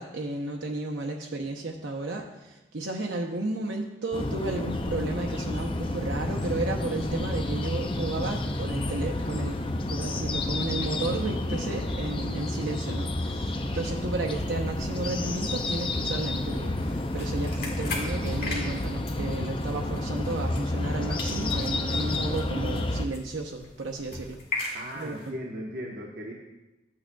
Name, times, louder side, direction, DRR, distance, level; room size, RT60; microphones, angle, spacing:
voice 1, 0.0-9.6 9.9-25.2, right 2 dB, 85° right, 1 dB, 0.8 m, -33 dB
sound 1, 4.1-23.1, left 1 dB, 30° left, 0.6 m, -30 dB
sound 2, 16.8-20.9 21.2-25.3, left 3 dB, 55° left, 2.1 m, -39 dB
voice 2, 24.7-26.3, equal, 55° right, -2 dB, 1.0 m, -37 dB
13.5 x 8.6 x 2.3 m, 1.0 s
head